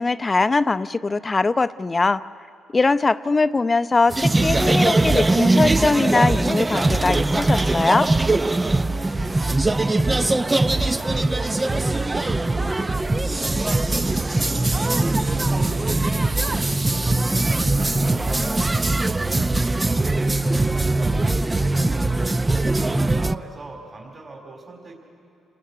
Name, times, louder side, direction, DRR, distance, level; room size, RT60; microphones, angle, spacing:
voice 1, 0.0-2.2 2.7-8.1, left 3 dB, 25° left, 13 dB, 0.7 m, -21 dB
sound 1, 4.1-23.3, right 2 dB, 20° right, 0.6 m, -21 dB
voice 2, 8.5-24.9, right 3 dB, 35° right, 0 dB, 4.1 m, -42 dB
28.5 x 20.0 x 9.8 m, 2.6 s
cardioid pair, 90°, 0 cm